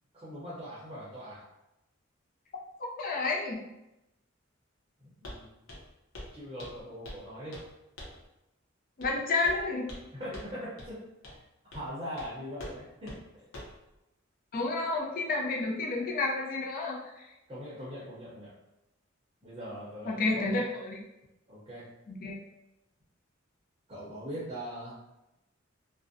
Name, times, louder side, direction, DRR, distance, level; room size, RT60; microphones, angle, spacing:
voice 1, 0.1-1.4 5.0-5.5 6.3-7.6 10.1-11.4 11.7-13.4 17.5-18.5 19.4-20.6 21.5-21.9 23.9-25.0, equal, 25° right, -8 dB, 0.6 m, -41 dB
voice 2, 2.8-3.6 9.0-9.9 14.5-17.3 20.1-21.0 22.1-22.4, left 3 dB, 45° left, -1 dB, 0.5 m, -30 dB
Walk footsteps, 5.2-5.4 5.7-5.9 6.1-6.3 6.6-7.2 7.5-7.7 8.0-8.2 9.0-9.2 9.4-10.1 10.3-10.5 10.8-10.9 11.2-11.4 11.7-11.9 12.2-12.3 12.6-12.8 13.1-13.2 13.5-13.8, left 1 dB, 90° left, 0.7 m, -44 dB
2.4 x 2.0 x 2.6 m, 0.92 s
head